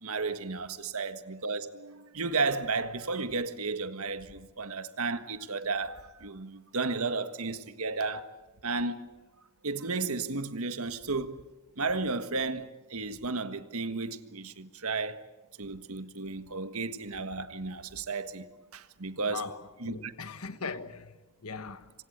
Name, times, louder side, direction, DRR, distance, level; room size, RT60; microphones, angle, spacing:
voice 1, 0.0-8.3 8.6-9.1 9.6-11.4 11.8-15.2 15.6-18.5 18.7-19.5 19.8-20.1, right 3 dB, 85° right, 1.7 m, -33 dB
voice 2, 19.3-21.2 21.4-21.9, left 4 dB, 85° left, 1.4 m, -39 dB
26.5 x 25.5 x 8.1 m
head